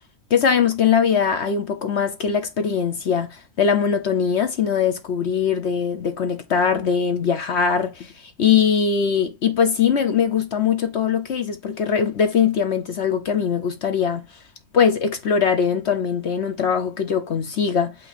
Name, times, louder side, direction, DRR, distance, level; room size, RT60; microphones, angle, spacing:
voice 1, 0.3-8.1 8.4-14.3 14.7-17.9, left 7 dB, 60° left, 1.1 m, -21 dB
8.6 x 3.1 x 4.2 m
omnidirectional pair, 1.4 m